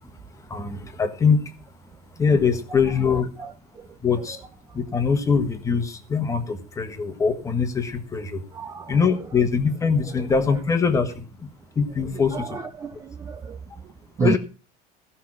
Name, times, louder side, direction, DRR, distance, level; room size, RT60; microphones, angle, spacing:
voice 1, 0.5-1.5 2.2-3.3 4.0-4.4 4.7-8.4 8.9-11.2 11.7-12.6 14.2-14.4, left 5 dB, 15° left, 1.4 m, -22 dB
voice 2, 8.5-9.0 12.3-13.6 14.2-14.4, right 5 dB, 15° right, 0.6 m, -29 dB
16.0 x 5.7 x 6.1 m
supercardioid pair, 150°, 20 cm